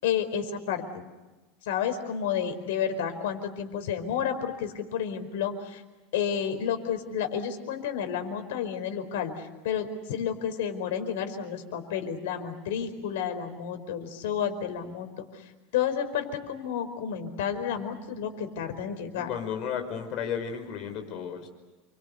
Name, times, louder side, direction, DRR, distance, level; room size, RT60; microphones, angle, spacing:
voice 1, 0.0-1.0 1.6-5.8 6.1-15.2 15.7-19.3, left 8 dB, 80° left, 7 dB, 4.8 m, -31 dB
voice 2, 19.1-21.5, left 7 dB, 40° left, 6 dB, 5.1 m, -33 dB
29.5 x 24.5 x 6.9 m, 1.2 s
supercardioid pair, 165°, 0 cm